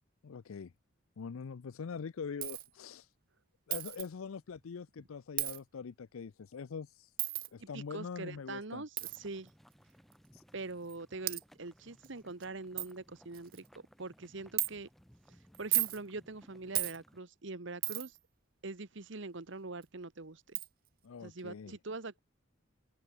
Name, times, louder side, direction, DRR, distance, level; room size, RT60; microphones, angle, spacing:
voice 1, 0.2-0.7 1.2-3.1 3.7-7.1 7.5-8.8 10.3-10.4 21.0-21.7, left 6 dB, 85° left, 0.5 m, -43 dB
Coin (dropping), 2.4-2.7 3.7-4.1 5.4-5.6 7.2-7.5 9.0-9.2 10.1-10.2 10.9-11.0 11.3-11.4 12.0-12.1 12.4-12.5 12.8-12.9 13.3-13.7 14.6-14.7 15.5-16.0 16.7-17.0 17.8-18.2 19.8-19.9 20.5-20.7, right 19 dB, 45° right, 0.5 m, -34 dB
voice 2, 7.6-9.5 10.5-14.9 15.3-18.2 18.6-20.6 21.2-22.2, right 3 dB, 60° right, 1.1 m, -43 dB
sound 1, 9.0-17.2, equal, ahead, 2.4 m, -63 dB
head